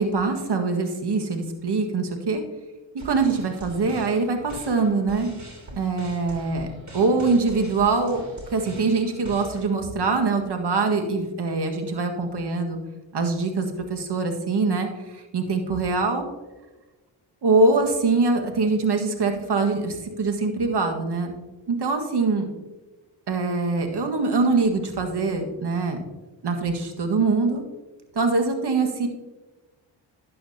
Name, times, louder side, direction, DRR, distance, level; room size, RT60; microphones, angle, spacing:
voice 1, 0.0-2.4 3.0-5.4 5.7-6.7 6.9-8.2 8.5-12.8 13.1-16.3 17.4-21.3 21.7-22.5 23.3-26.0 26.4-27.6 28.1-29.1, right 3 dB, 55° right, 5 dB, 1.8 m, -23 dB
sound 1, 3.0-9.7, equal, 35° right, 3.2 m, -43 dB
12.0 x 8.7 x 2.8 m, 1.2 s
supercardioid pair, 45°, 49 cm